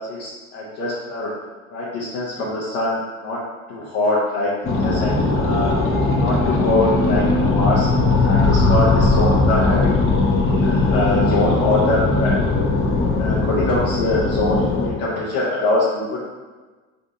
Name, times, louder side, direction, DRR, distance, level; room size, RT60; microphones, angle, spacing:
voice 1, 0.0-1.3 1.7-3.4 3.7-5.7 6.2-7.9 8.2-9.9 10.5-12.4 13.2-16.2, left 2 dB, 75° left, -7 dB, 0.8 m, -23 dB
sound 1, 4.6-14.9, left 3 dB, 30° left, 0.7 m, -19 dB
2.6 x 2.5 x 4.2 m, 1.3 s
hypercardioid pair, 60°, 40 cm